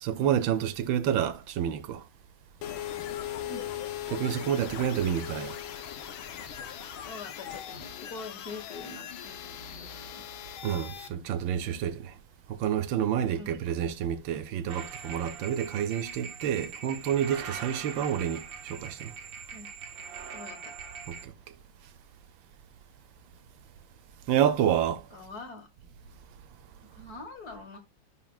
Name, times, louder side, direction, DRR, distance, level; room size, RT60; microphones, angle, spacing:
voice 1, 0.0-2.0 4.1-5.6 10.6-12.1 12.5-19.1 21.2-21.3 24.3-25.0, right 9 dB, 80° right, 1.4 m, -29 dB
sound 1, 2.6-11.1, left 10 dB, 90° left, 1.7 m, -39 dB
voice 2, 7.1-10.3 13.2-13.6 19.5-19.7 20.3-20.7 25.1-25.7 26.9-27.8, left 3 dB, 50° left, 2.0 m, -44 dB
sound 2, 14.7-21.2, right 6 dB, 50° right, 1.2 m, -42 dB
10.5 x 4.0 x 2.4 m
omnidirectional pair, 2.2 m